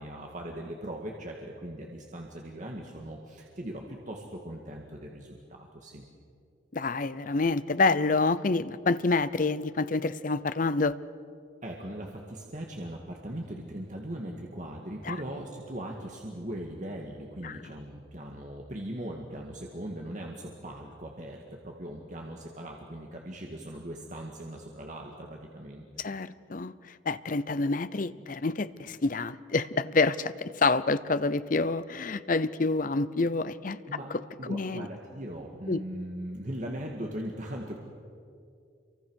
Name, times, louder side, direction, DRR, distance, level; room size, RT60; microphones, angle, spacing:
voice 1, 0.0-6.0 11.6-25.8 33.9-34.1 34.4-37.7, right 1 dB, 40° right, 0 dB, 1.9 m, -39 dB
voice 2, 6.7-11.0 15.0-15.2 17.4-17.6 26.0-33.8 34.5-34.9 35.7-35.8, left 3 dB, 40° left, 14 dB, 0.6 m, -27 dB
28.0 x 24.0 x 6.4 m, 2.3 s
head